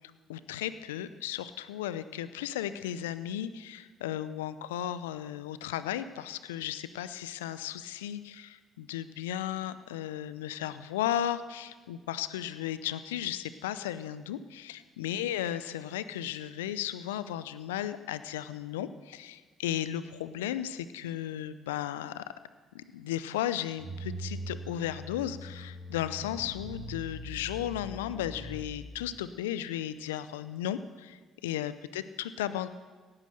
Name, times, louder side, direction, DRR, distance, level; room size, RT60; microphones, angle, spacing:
voice 1, 0.3-22.2 22.7-32.7, left 11 dB, 80° left, 14 dB, 0.6 m, -35 dB
sound 1, 23.8-29.2, equal, 25° right, 4.0 m, -42 dB
17.5 x 9.7 x 6.7 m, 1.4 s
hypercardioid pair, 50°, 0 cm